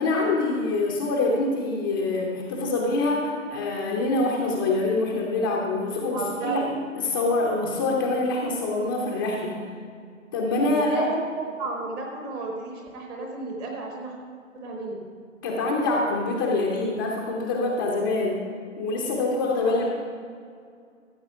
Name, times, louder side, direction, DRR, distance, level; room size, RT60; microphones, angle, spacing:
voice 1, 0.0-9.6 10.3-11.0 15.4-18.4 18.8-19.9, left 2 dB, 15° left, -2 dB, 0.7 m, -25 dB
voice 2, 6.1-6.7 10.7-14.1 14.5-15.0 19.6-19.9, right 3 dB, 10° right, 1 dB, 0.9 m, -32 dB
14.0 x 7.3 x 4.9 m, 2.2 s
figure-of-eight pair, 140°, 39 cm